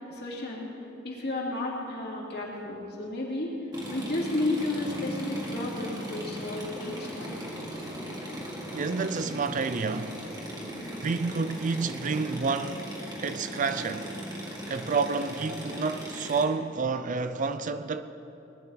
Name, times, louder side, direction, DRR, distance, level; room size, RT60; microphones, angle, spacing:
voice 1, 0.1-0.7 1.0-3.5 3.9-7.4, left 2 dB, 55° left, 2.6 m, -32 dB
sound 1, 3.7-16.4, equal, 20° right, 1.9 m, -38 dB
voice 2, 8.7-10.2 11.0-12.9 13.2-14.1 14.7-18.0, right 4 dB, 40° right, 0.4 m, -29 dB
19.0 x 11.0 x 4.1 m
head